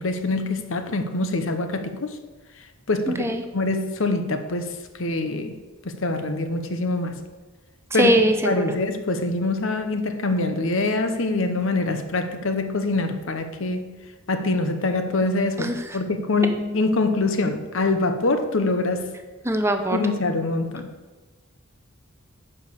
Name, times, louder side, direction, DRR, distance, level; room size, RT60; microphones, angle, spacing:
voice 1, 0.0-2.2 2.9-3.2 3.5-5.5 5.8-7.2 7.9-8.1 8.4-13.9 14.3-19.1 19.9-20.9, left 2 dB, 60° left, 8 dB, 0.9 m, -24 dB
voice 2, 3.1-3.4 7.9-8.7 15.6-15.7 19.4-20.0, right 1 dB, 10° right, 6 dB, 0.6 m, -21 dB
9.7 x 4.9 x 6.8 m, 1.2 s
head